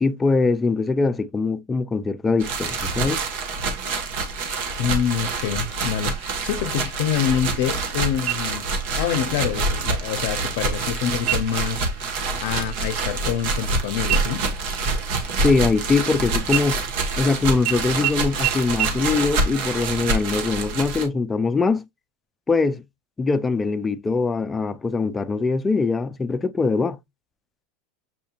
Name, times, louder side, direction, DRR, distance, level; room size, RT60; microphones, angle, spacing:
voice 1, 0.0-3.2 15.2-16.8 17.2-21.9 22.5-22.8 23.2-27.0, left 4 dB, 15° left, 0.5 m, -22 dB
sound 1, 2.4-21.1, right 3 dB, 65° right, 1.4 m, -26 dB
voice 2, 4.8-8.7 9.0-14.4, left 9 dB, 70° left, 0.6 m, -26 dB
sound 2, 8.3-8.9 9.3-9.4 10.0-10.5 11.2-11.7 12.1-12.4 12.7-13.8 14.1-16.1 16.5-17.3 17.7-17.8 18.0-18.1 18.4-18.5 18.8-18.9, right 16 dB, 30° right, 1.1 m, -29 dB
7.3 x 2.8 x 2.4 m
supercardioid pair, 130°, 0 cm